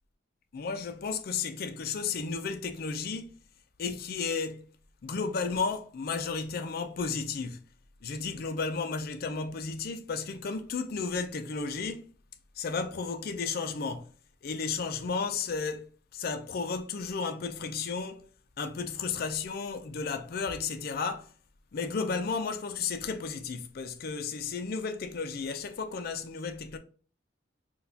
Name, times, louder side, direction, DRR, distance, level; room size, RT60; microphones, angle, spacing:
voice 1, 0.5-3.4 3.8-4.7 5.0-7.6 8.0-12.1 12.6-14.1 14.4-18.3 18.6-21.3 21.7-26.8, left 5 dB, 55° left, 0.4 m, -33 dB
4.0 x 2.3 x 2.7 m
head